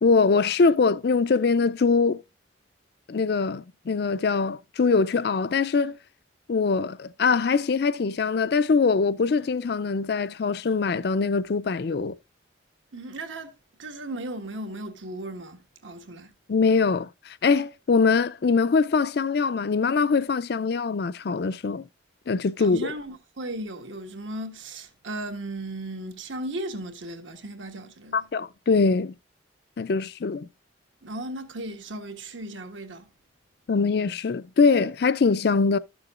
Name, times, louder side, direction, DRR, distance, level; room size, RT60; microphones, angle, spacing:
voice 1, 0.0-2.2 3.1-6.0 6.5-12.1 16.5-17.1 17.4-21.8 22.3-22.9 28.1-29.1 29.8-30.5 33.7-35.8, left 4 dB, 55° left, 0.4 m, -23 dB
voice 2, 12.9-13.5 13.8-16.3 22.6-28.3 31.0-33.1, right 1 dB, 80° right, 1.4 m, -36 dB
13.0 x 7.0 x 2.4 m
head